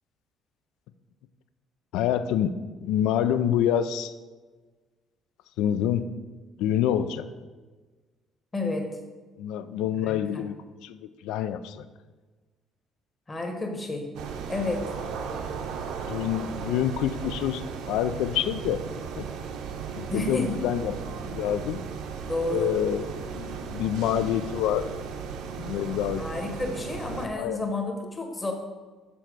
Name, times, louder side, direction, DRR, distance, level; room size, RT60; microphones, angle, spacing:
voice 1, 1.9-4.1 5.6-6.1 6.6-7.3 9.4-11.9 16.1-18.8 19.2-19.3 19.9-21.8 22.5-24.9 25.6-26.4 27.4-27.6, left 10 dB, 90° left, 12 dB, 0.4 m, -27 dB
voice 2, 8.5-8.9 10.0-10.4 13.3-14.1 14.5-14.9 20.1-20.5 22.3-22.7 26.2-28.5, left 2 dB, 15° left, 3 dB, 1.0 m, -30 dB
sound 1, 14.1-27.3, right 6 dB, 75° right, 0.7 m, -36 dB
7.1 x 4.3 x 6.1 m, 1.3 s
cardioid pair, 165°, 0 cm